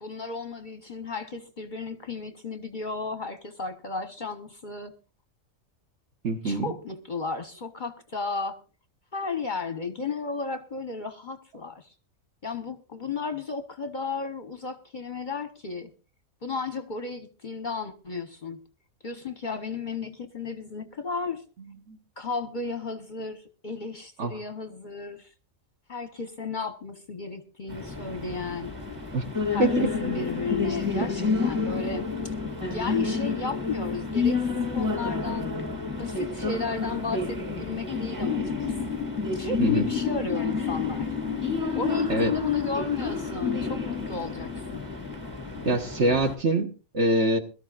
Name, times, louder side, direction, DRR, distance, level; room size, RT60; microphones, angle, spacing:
voice 1, 0.0-4.9 6.4-8.6 9.1-11.9 12.4-15.9 16.4-18.6 19.0-21.4 22.2-25.3 25.9-28.8 29.5-32.3 32.7-35.6 36.0-38.8 39.3-41.1 41.7-44.9, left 4 dB, 40° left, 0.9 m, -34 dB
voice 2, 6.2-6.7 21.9-22.0 24.2-24.4 29.1-29.3 29.6-29.9 39.6-39.9 42.1-42.3 45.6-47.4, right 2 dB, 55° right, 1.5 m, -24 dB
sound 1, 27.7-46.4, left 4 dB, 15° right, 2.6 m, -29 dB
22.5 x 13.0 x 2.5 m
omnidirectional pair, 1.5 m